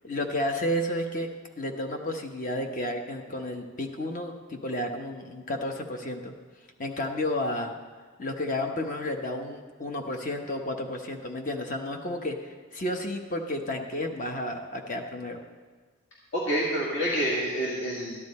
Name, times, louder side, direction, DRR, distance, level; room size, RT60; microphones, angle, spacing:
voice 1, 0.0-1.3 1.6-6.3 6.8-7.7 8.2-15.4, left 1 dB, 35° left, 4 dB, 1.0 m, -32 dB
voice 2, 16.3-18.3, equal, 55° left, -6 dB, 2.0 m, -28 dB
13.5 x 10.0 x 4.2 m, 1.5 s
head